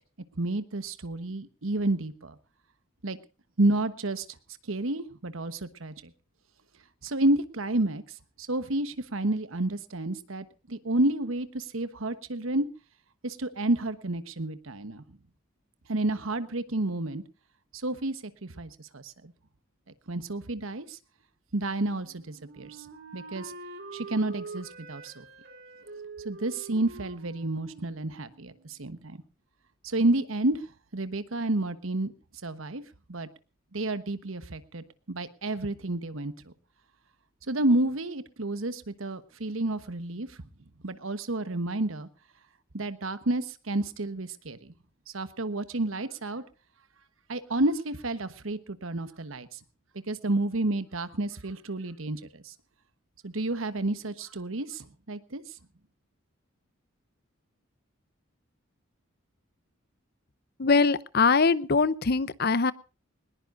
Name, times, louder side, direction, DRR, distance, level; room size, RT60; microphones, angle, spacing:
voice 1, 0.3-2.3 3.0-3.2 3.6-4.2 4.7-5.9 7.0-8.0 8.4-12.7 13.2-15.0 15.9-17.2 17.8-19.3 20.1-21.0 21.5-22.9 23.1-23.5 23.9-25.2 26.2-29.2 29.8-30.7 30.9-32.1 32.4-32.8 33.1-33.3 33.7-36.3 37.5-40.3 40.8-42.1 42.7-44.7 45.1-46.4 47.3-49.6 50.1-52.5 53.2-55.4, right 2 dB, 75° right, 12 dB, 1.2 m, -30 dB
Wind instrument woodwind instrument, 22.0-28.8, right 3 dB, 50° right, 3.7 m, -45 dB
voice 2, 60.6-62.7, left 4 dB, 50° left, 18 dB, 0.7 m, -22 dB
20.5 x 20.0 x 2.6 m, 0.34 s
head